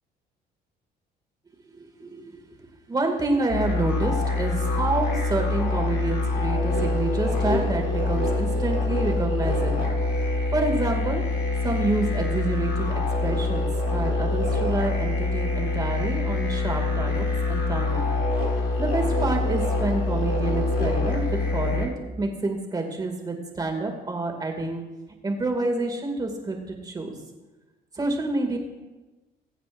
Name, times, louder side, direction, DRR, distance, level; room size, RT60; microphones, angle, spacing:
voice 1, 1.7-11.2 11.6-12.9 13.2-18.1 18.8-21.9 22.2-24.8 25.2-27.2 27.9-28.6, right 2 dB, 25° right, 2 dB, 2.3 m, -28 dB
sound 1, 3.5-21.9, left 3 dB, 80° left, 3.4 m, -25 dB
21.5 x 8.3 x 2.6 m, 1.1 s
cardioid pair, 110°, 17 cm